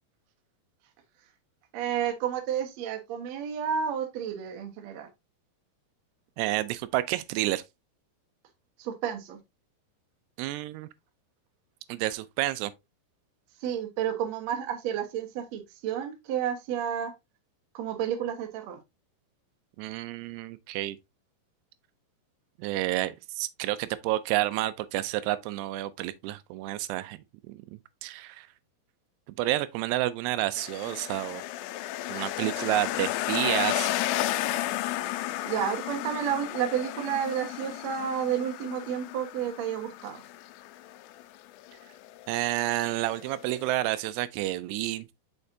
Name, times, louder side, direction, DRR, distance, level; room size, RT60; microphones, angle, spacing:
voice 1, 1.7-5.1 8.8-9.4 13.6-17.1 17.7-18.8 32.4-32.5 35.4-40.2, right 9 dB, 70° right, 1.7 m, -31 dB
voice 2, 6.4-7.6 10.4-10.9 11.9-12.7 19.8-21.0 22.6-27.2 27.5-27.6 28.0-28.5 29.4-31.4 32.1-33.9 42.3-45.1, right 16 dB, 85° right, 2.6 m, -30 dB
sound 1, 30.6-43.7, left 15 dB, 85° left, 2.6 m, -33 dB
6.5 x 5.8 x 2.6 m
omnidirectional pair, 4.8 m